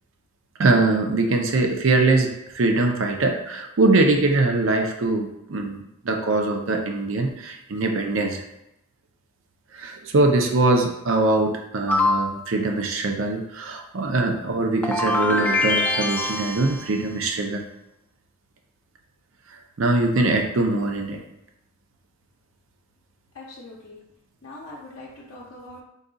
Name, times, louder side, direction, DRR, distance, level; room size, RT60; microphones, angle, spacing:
voice 1, 0.6-8.4 9.7-17.7 19.8-21.2, right 2 dB, 60° right, 3 dB, 0.5 m, -22 dB
sound 1, 11.9-12.4 14.8-17.0, left 2 dB, 10° left, 0.3 m, -23 dB
voice 2, 23.3-24.0 24.4-25.8, left 2 dB, 65° left, -5 dB, 0.6 m, -42 dB
3.9 x 2.3 x 3.8 m, 0.85 s
head